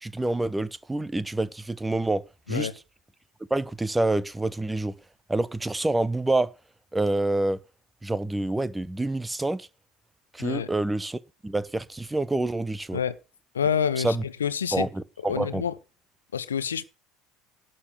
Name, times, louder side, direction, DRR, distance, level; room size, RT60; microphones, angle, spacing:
voice 1, 0.0-2.2 2.5-2.7 3.5-4.9 5.3-6.5 6.9-7.6 8.0-9.7 10.3-13.0 14.0-14.2 14.7-15.6, right 2 dB, 10° right, 0.9 m, -27 dB
voice 2, 13.5-14.8 15.3-15.7 16.3-16.8, left 7 dB, 75° left, 0.7 m, -27 dB
11.5 x 6.9 x 6.4 m
figure-of-eight pair, 65°, 0 cm